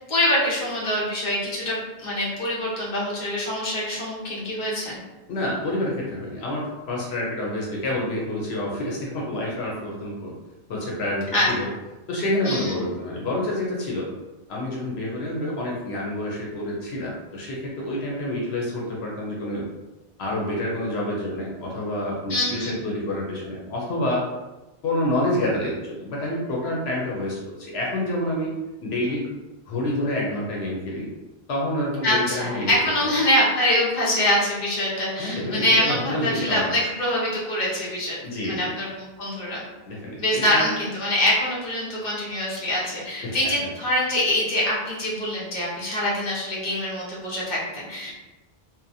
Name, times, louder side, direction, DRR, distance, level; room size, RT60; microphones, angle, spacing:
voice 1, 0.1-5.0 11.3-11.5 12.4-12.7 22.3-22.7 32.0-38.2 38.4-39.6 40.2-48.1, left 1 dB, 50° left, -6 dB, 1.0 m, -24 dB
voice 2, 5.3-10.3 10.7-11.7 12.1-14.1 14.5-19.6 20.2-24.2 24.8-28.5 28.8-29.3 29.7-31.1 31.5-32.7 35.2-36.7 38.2-38.7 39.9-40.7 43.2-43.3, left 1 dB, 85° left, -4 dB, 0.9 m, -28 dB
2.8 x 2.1 x 2.6 m, 1.1 s
omnidirectional pair, 1.0 m